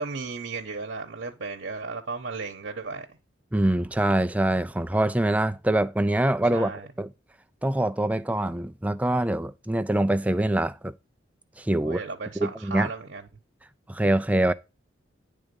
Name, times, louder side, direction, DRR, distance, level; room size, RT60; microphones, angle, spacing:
voice 1, 0.0-3.1 6.5-6.9 11.8-13.2, right 4 dB, 70° right, 1.0 m, -34 dB
voice 2, 3.5-6.7 7.0-7.1 7.6-10.9 11.6-12.0 12.4-12.9 13.9-14.5, right 1 dB, 10° right, 0.3 m, -24 dB
10.0 x 3.6 x 5.2 m
head